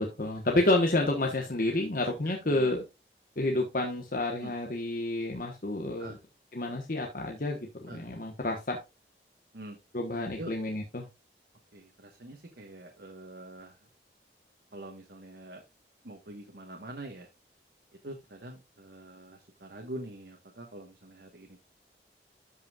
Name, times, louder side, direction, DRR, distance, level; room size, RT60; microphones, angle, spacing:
voice 1, 0.0-2.8 3.4-6.1 6.5-8.8 9.9-11.1, left 2 dB, 50° left, 1 dB, 1.2 m, -29 dB
voice 2, 2.2-2.7 4.4-4.5 6.0-6.2 7.9-8.0 9.5-9.8 10.4-10.5 11.7-13.8 14.7-15.6 16.0-17.3 18.0-21.6, right 1 dB, 65° right, 2 dB, 1.3 m, -44 dB
13.0 x 5.5 x 2.4 m, 0.24 s
head